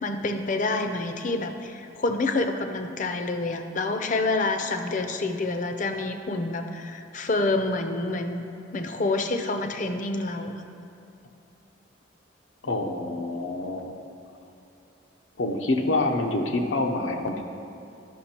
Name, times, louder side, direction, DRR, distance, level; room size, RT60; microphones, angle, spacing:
voice 1, 0.0-8.4 8.7-10.5, left 2 dB, 40° left, 6 dB, 0.6 m, -27 dB
voice 2, 12.6-14.0 15.4-17.4, left 2 dB, 80° left, 3 dB, 0.8 m, -26 dB
11.0 x 6.1 x 4.4 m, 2.8 s
head